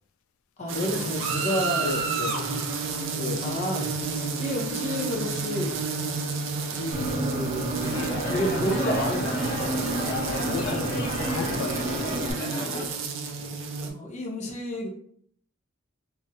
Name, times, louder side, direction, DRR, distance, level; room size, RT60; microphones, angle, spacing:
voice 1, 0.6-1.9 2.2-2.7 3.4-5.8 6.7-7.8 8.3-9.4 12.4-12.9 13.8-14.9, equal, 35° left, 0.6 m, -31 dB
sound 1, 0.7-13.9, right 5 dB, 70° right, 0.5 m, -31 dB
voice 2, 1.8-2.4 3.2-3.6 6.7-6.8 10.2-12.0 13.4-13.5, left 5 dB, 90° left, 0.3 m, -35 dB
sound 2, 6.9-12.3, right 1 dB, 30° right, 0.7 m, -30 dB
sound 3, 7.8-12.8, left 1 dB, 65° left, 0.8 m, -33 dB
4.0 x 2.0 x 2.4 m
head